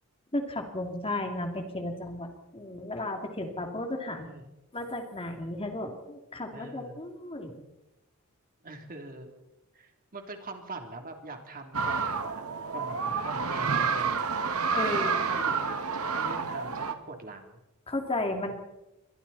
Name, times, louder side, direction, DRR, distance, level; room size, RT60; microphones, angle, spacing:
voice 1, 0.3-4.3 4.7-7.6 14.8-15.2 17.9-18.5, left 1 dB, 25° left, 4 dB, 2.8 m, -34 dB
voice 2, 4.1-4.5 6.5-7.0 8.6-9.3 9.7-12.4 12.7-17.6 18.5-18.6, right 2 dB, 40° right, 4 dB, 3.2 m, -43 dB
sound 1, 11.7-16.9, right 5 dB, 75° right, 2.0 m, -29 dB
29.0 x 24.0 x 4.2 m, 0.96 s
head